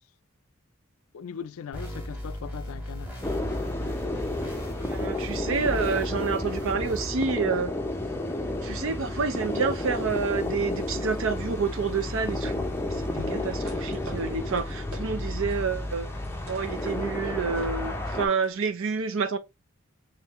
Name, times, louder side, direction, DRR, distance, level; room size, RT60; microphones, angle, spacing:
voice 1, 1.1-3.2 13.2-13.5, left 7 dB, 80° left, 0.4 m, -39 dB
sound 1, 1.7-7.1, equal, 5° right, 1.5 m, -39 dB
sound 2, 3.2-18.3, left 1 dB, 10° left, 0.5 m, -31 dB
voice 2, 4.8-7.7 8.6-16.1 16.5-19.4, right 5 dB, 65° right, 0.6 m, -29 dB
sound 3, 13.3-15.1 15.5-18.5, right 2 dB, 90° right, 1.5 m, -47 dB
3.6 x 3.3 x 2.9 m
head